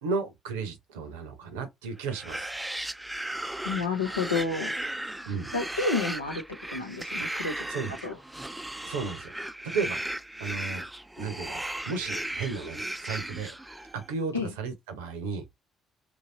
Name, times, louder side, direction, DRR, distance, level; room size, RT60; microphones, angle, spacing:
voice 1, 0.0-2.4 5.3-5.5 7.7-7.9 8.8-9.3 9.6-10.0 10.4-10.9 11.2-13.5 13.9-15.4, right 5 dB, 75° right, 0.7 m, -34 dB
sound 1, 2.0-14.1, right 1 dB, 10° right, 0.4 m, -36 dB
voice 2, 3.6-4.7 5.5-6.4 6.7-7.7 8.0-8.2 14.3-14.5, left 4 dB, 90° left, 0.6 m, -30 dB
3.0 x 2.8 x 2.6 m
figure-of-eight pair, 45°, 0 cm